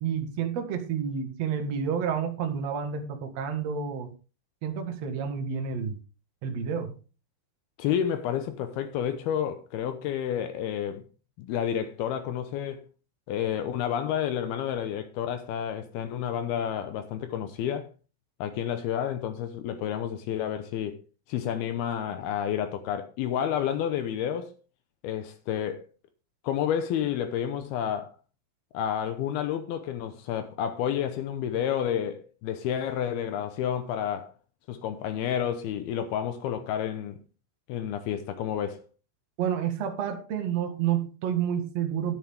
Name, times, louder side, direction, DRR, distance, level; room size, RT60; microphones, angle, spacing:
voice 1, 0.0-4.1 4.6-6.0 6.4-6.9 39.4-42.2, right 7 dB, 75° right, 1.5 m, -29 dB
voice 2, 7.8-11.0 11.4-12.8 13.3-17.9 18.4-21.0 21.3-24.5 25.0-25.8 26.4-28.1 28.7-34.3 34.7-37.2 37.7-38.8, left 9 dB, 85° left, 2.2 m, -30 dB
11.0 x 9.9 x 3.5 m
omnidirectional pair, 5.9 m